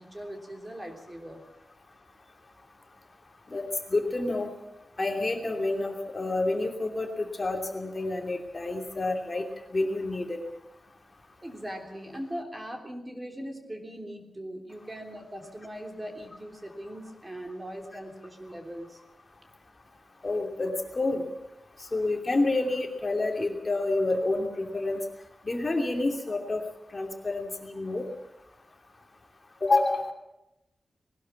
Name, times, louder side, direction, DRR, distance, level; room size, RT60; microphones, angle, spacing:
voice 1, 0.0-1.4 11.4-19.0, equal, 15° right, 3 dB, 3.3 m, -40 dB
voice 2, 3.9-4.5 5.0-9.4 9.7-10.4 20.2-21.2 21.9-25.0 25.4-26.6 26.9-28.0 29.6-30.0, left 2 dB, 30° left, 3 dB, 2.8 m, -28 dB
20.0 x 19.5 x 7.1 m, 0.90 s
wide cardioid pair, 165°, 0 cm